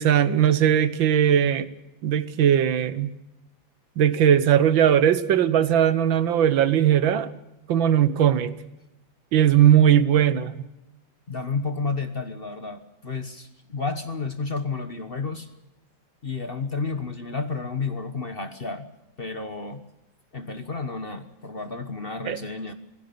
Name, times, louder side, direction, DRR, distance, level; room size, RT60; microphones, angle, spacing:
voice 1, 0.0-1.7 2.0-3.1 4.0-7.3 7.7-8.5 9.3-10.5 22.3-22.4, right 9 dB, 80° right, 14 dB, 1.8 m, -19 dB
voice 2, 11.3-15.5 16.2-18.9 19.2-19.8 20.3-22.7, left 4 dB, 35° left, 8 dB, 1.2 m, -31 dB
26.5 x 17.0 x 6.8 m, 0.92 s
omnidirectional pair, 2.1 m